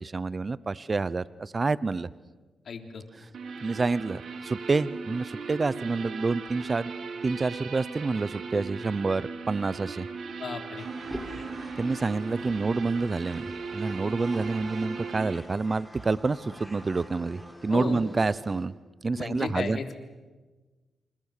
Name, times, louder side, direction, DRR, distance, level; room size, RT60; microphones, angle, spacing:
voice 1, 0.0-2.1 3.6-6.9 7.2-10.1 11.8-18.7 19.0-19.8, right 3 dB, 35° right, 18 dB, 0.7 m, -28 dB
voice 2, 2.7-3.0 10.4-10.9 17.7-18.0 19.2-19.9, left 5 dB, 60° left, 6 dB, 3.5 m, -34 dB
sound 1, 3.3-15.3, right 4 dB, 70° right, 3.2 m, -38 dB
sound 2, 10.8-18.7, equal, ahead, 4.9 m, -44 dB
28.5 x 28.5 x 6.7 m, 1.3 s
cardioid pair, 75°, 0 cm